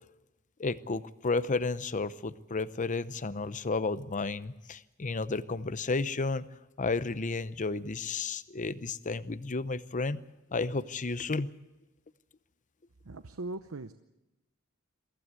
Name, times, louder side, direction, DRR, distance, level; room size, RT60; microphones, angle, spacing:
voice 1, 0.6-6.5 6.8-10.2 10.5-11.5, left 3 dB, 35° left, 15 dB, 0.8 m, -32 dB
voice 2, 13.0-13.9, right 2 dB, 75° right, 10 dB, 0.8 m, -39 dB
23.0 x 15.5 x 8.3 m, 0.99 s
head